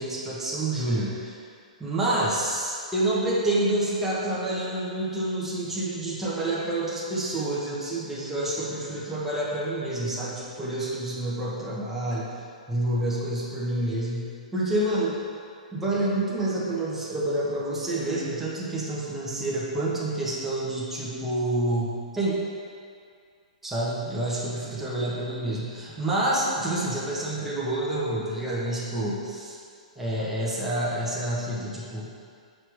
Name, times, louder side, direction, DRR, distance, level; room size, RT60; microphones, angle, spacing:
voice 1, 0.0-1.4 1.8-12.3 12.7-15.2 15.7-22.3 23.6-29.6 30.0-32.1, right 1 dB, 5° right, -8 dB, 1.1 m, -28 dB
5.8 x 4.7 x 3.5 m, 2.3 s
hypercardioid pair, 125°, 4 cm